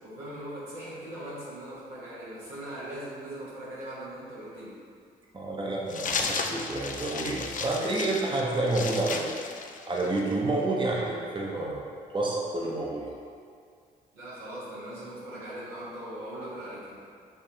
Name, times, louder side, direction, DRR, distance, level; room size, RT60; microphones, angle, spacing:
voice 1, 0.0-4.8 14.1-17.0, right 1 dB, 80° right, -9 dB, 1.3 m, -40 dB
voice 2, 5.3-9.3 9.9-11.8 12.1-13.1, right 2 dB, 25° right, -3 dB, 0.9 m, -29 dB
sound 1, 5.9-10.3, left 4 dB, 40° left, 0.4 m, -34 dB
7.0 x 2.6 x 2.8 m, 2.2 s
hypercardioid pair, 40°, 20 cm